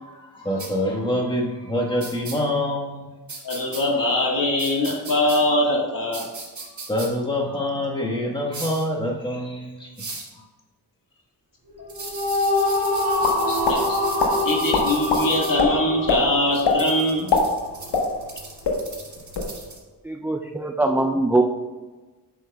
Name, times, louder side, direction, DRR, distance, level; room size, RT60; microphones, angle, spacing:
voice 1, 0.0-3.1 6.9-9.9, left 1 dB, 10° left, -2 dB, 1.4 m, -26 dB
sound 1, 0.6-0.7 2.0-2.4 3.3-3.8 4.6-5.4 6.1-7.1 8.5-8.8 10.0-10.3 11.9-15.5 16.5-19.8, right 3 dB, 45° right, 1.6 m, -37 dB
voice 2, 3.4-6.3 11.8-11.9 13.5-14.0 14.4-17.3, left 1 dB, 50° left, 0 dB, 1.7 m, -22 dB
sound 2, 11.7-17.2, left 2 dB, 60° right, 2.1 m, -25 dB
sound 3, 13.2-13.8 14.2-14.3 14.7-15.2 15.6-15.7 16.1-16.2 16.6-16.8 17.2-18.4 18.6-18.8 19.2-19.5, left 4 dB, 80° left, 1.3 m, -21 dB
voice 3, 20.0-21.4, right 2 dB, 5° right, 2 dB, 0.4 m, -22 dB
8.3 x 6.3 x 2.3 m, 1.3 s
cardioid pair, 80°, 41 cm